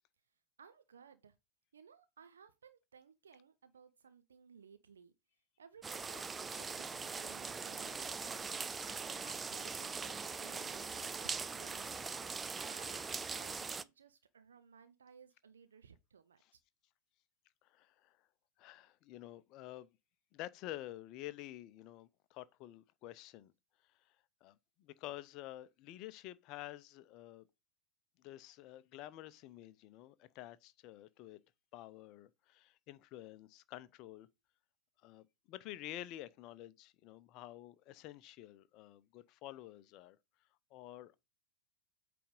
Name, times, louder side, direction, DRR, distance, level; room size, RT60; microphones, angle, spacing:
voice 1, 0.6-1.4 1.7-5.1 5.6-8.0 8.7-8.8 9.1-12.3 12.6-16.6, right 6 dB, 70° right, 0.6 m, -60 dB
sound 1, 5.8-13.8, right 5 dB, 15° right, 0.4 m, -41 dB
voice 2, 17.6-18.2 18.6-19.9 20.3-23.5 24.4-27.4 28.2-31.4 31.7-34.3 35.0-40.2 40.7-41.2, left 14 dB, 40° left, 0.6 m, -50 dB
8.5 x 3.4 x 5.2 m
figure-of-eight pair, 90°, 0 cm